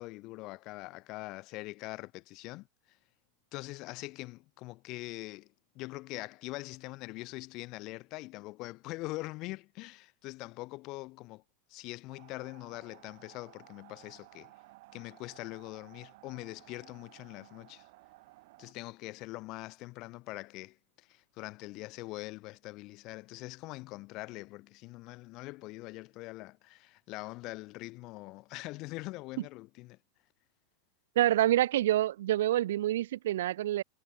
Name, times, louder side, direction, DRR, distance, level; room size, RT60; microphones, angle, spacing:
voice 1, 0.0-3.0 3.5-5.5 5.7-11.4 11.7-14.5 14.9-17.9 18.6-30.0, left 21 dB, 45° left, 0.7 m, -43 dB
sound 1, 12.1-18.7, right 22 dB, 60° right, 5.9 m, -57 dB
voice 2, 31.2-33.8, right 13 dB, 80° right, 0.7 m, -27 dB
supercardioid pair, 140°, 0 cm